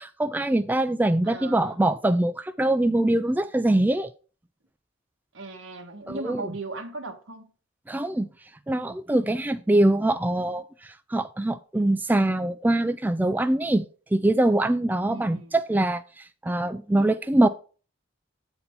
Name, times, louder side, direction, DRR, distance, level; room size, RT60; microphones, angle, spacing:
voice 1, 0.0-4.1 6.1-6.4 7.9-8.3 8.7-10.6 11.1-16.0 16.4-17.5, right 1 dB, 10° right, 0.3 m, -23 dB
voice 2, 1.2-1.8 5.3-7.5 15.1-15.6, right 3 dB, 90° right, 1.4 m, -37 dB
8.1 x 4.3 x 5.3 m
head